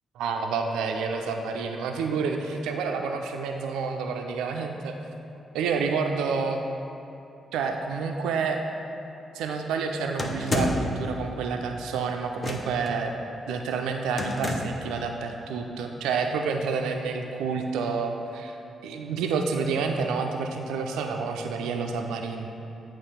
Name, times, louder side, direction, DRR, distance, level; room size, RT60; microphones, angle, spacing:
voice 1, 0.2-5.0 5.5-6.6 7.5-8.6 9.3-13.1 13.5-18.5 18.8-22.5, right 5 dB, 80° right, 4 dB, 0.3 m, -29 dB
sound 1, 10.2-11.0 12.4-12.9 14.2-14.9, left 1 dB, 40° left, 0.7 m, -29 dB
8.1 x 3.0 x 5.5 m, 2.7 s
hypercardioid pair, 40°, 0 cm